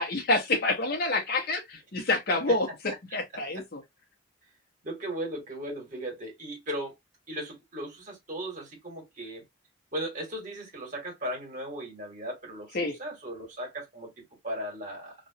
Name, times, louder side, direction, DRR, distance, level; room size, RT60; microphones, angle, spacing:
voice 1, 0.0-3.8 12.7-12.9, left 2 dB, 50° left, 0.9 m, -28 dB
voice 2, 4.8-6.9 7.3-9.4 9.9-14.1 14.4-15.1, right 1 dB, 40° right, 1.6 m, -37 dB
3.0 x 2.5 x 2.7 m
head